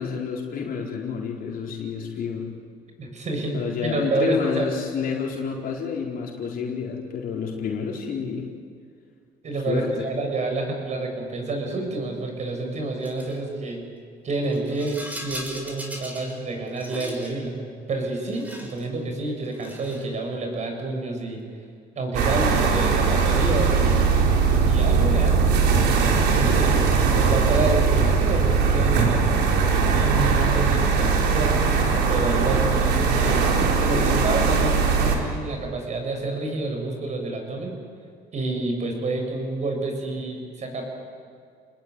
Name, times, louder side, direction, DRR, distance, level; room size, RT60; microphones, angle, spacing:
voice 1, 0.0-2.4 3.5-8.4 9.7-10.1 33.9-34.2, left 6 dB, 60° left, -1 dB, 4.4 m, -29 dB
voice 2, 3.0-3.6 3.8-4.7 9.4-13.8 14.2-17.6 17.9-21.5 22.0-24.3 24.7-26.8 27.1-29.3 29.9-31.8 32.1-33.4 33.8-37.8 38.3-40.8, right 2 dB, 45° right, 3 dB, 7.5 m, -29 dB
Rattle, 13.0-13.4 14.4-16.4 16.7-17.4 18.2-18.9 19.5-20.1, equal, 10° right, 6.3 m, -38 dB
sound 1, 22.1-35.2, right 5 dB, 85° right, 4.3 m, -20 dB
29.5 x 20.0 x 9.8 m, 2.3 s
cardioid pair, 110°, 17 cm